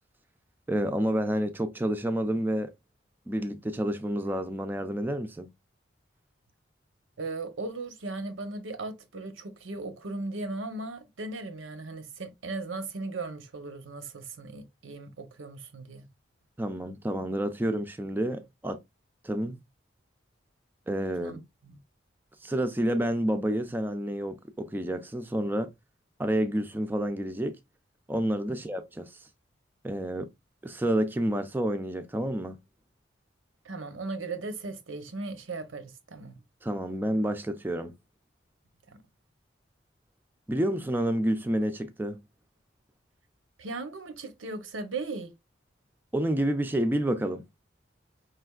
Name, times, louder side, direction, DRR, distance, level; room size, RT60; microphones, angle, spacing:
voice 1, 0.7-2.7 3.3-5.5 16.6-18.8 19.2-19.6 20.9-21.4 22.4-25.7 26.2-27.6 28.1-29.3 29.8-30.3 30.6-32.6 36.6-37.9 40.5-42.2 46.1-47.4, right 1 dB, 10° right, 0.3 m, -29 dB
voice 2, 7.2-16.1 21.2-21.8 28.5-28.6 33.6-36.4 43.6-45.3, right 3 dB, 85° right, 0.8 m, -37 dB
4.9 x 3.3 x 2.3 m
head